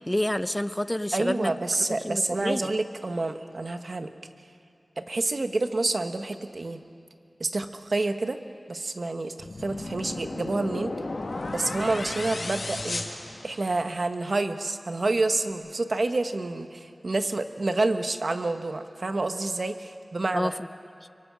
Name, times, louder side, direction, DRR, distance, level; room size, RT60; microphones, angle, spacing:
voice 1, 0.1-1.5 2.0-2.7 20.3-20.5, left 1 dB, 15° left, 13 dB, 0.7 m, -28 dB
voice 2, 1.1-4.1 5.0-6.8 7.4-8.4 8.7-9.3 9.6-10.9 11.5-13.0 13.4-20.5, right 2 dB, 60° right, 8 dB, 1.2 m, -28 dB
sound 1, 9.4-14.0, left 2 dB, 70° left, 1.9 m, -34 dB
25.5 x 23.5 x 6.2 m, 2.4 s
wide cardioid pair, 70°, 0 cm